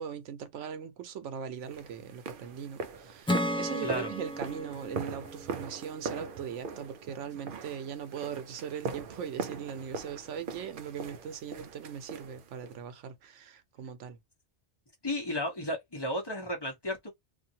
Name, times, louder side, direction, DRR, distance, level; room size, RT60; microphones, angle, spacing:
voice 1, 0.0-14.2, right 8 dB, 85° right, 1.0 m, -40 dB
sound 1, 1.7-12.8, right 4 dB, 60° right, 0.6 m, -41 dB
Acoustic guitar / Strum, 3.3-6.7, left 1 dB, 5° left, 0.5 m, -35 dB
voice 2, 15.0-17.1, left 1 dB, 20° left, 1.1 m, -33 dB
2.6 x 2.6 x 2.7 m
omnidirectional pair, 1.2 m